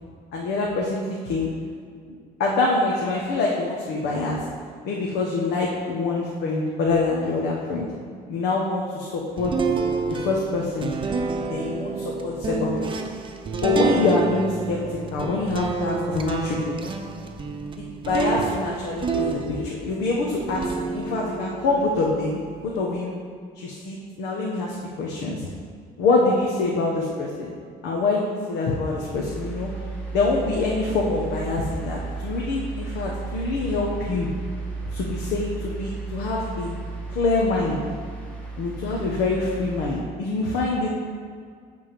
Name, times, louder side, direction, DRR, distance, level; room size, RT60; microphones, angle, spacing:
voice 1, 0.3-1.6 2.1-2.2 2.4-4.4 4.8-7.9 8.3-9.5 10.1-10.9 11.5-13.1 13.6-16.7 17.8-23.1 23.5-25.5 26.0-27.5 27.8-29.7 30.1-34.3 34.9-36.8 37.1-37.8 38.6-40.9, left 3 dB, 85° left, -2 dB, 1.1 m, -25 dB
sound 1, 9.4-20.0 20.4-22.7, right 4 dB, 30° right, 0.8 m, -29 dB
sound 2, 29.1-40.0, right 4 dB, 5° left, 1.5 m, -34 dB
9.1 x 3.7 x 6.8 m, 2.1 s
cardioid pair, 110°, 17 cm